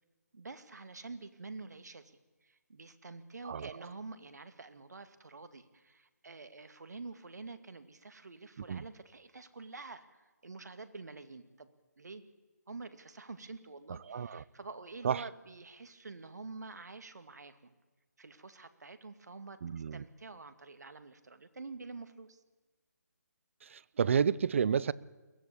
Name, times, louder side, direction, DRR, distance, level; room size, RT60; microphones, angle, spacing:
voice 1, 0.3-11.7 12.0-12.2 12.7-17.7 18.2-22.4, right 3 dB, 75° right, 2.3 m, -48 dB
voice 2, 14.1-14.4 15.0-15.2 19.6-20.0 23.6-24.9, right 7 dB, 45° right, 0.7 m, -30 dB
22.5 x 17.5 x 8.5 m
figure-of-eight pair, 155°, 9 cm